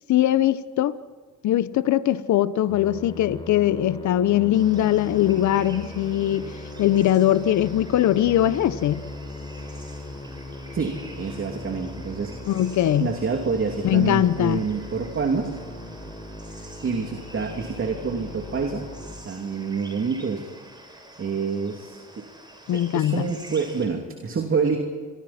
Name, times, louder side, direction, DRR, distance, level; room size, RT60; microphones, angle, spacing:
voice 1, 0.1-0.9 1.4-9.1 12.5-13.1 13.8-14.6 22.7-23.3, left 12 dB, 70° left, 14 dB, 0.9 m, -21 dB
Musical instrument, 2.7-19.8, left 1 dB, 15° left, 4.8 m, -39 dB
sound 1, 4.5-23.9, right 1 dB, 15° right, 6.6 m, -47 dB
voice 2, 10.7-12.6 13.0-15.5 16.5-18.8 19.2-20.4 20.9-22.2 22.7-24.8, right 5 dB, 45° right, 3 dB, 2.8 m, -27 dB
29.5 x 24.5 x 4.4 m, 1.5 s
cardioid pair, 90°, 30 cm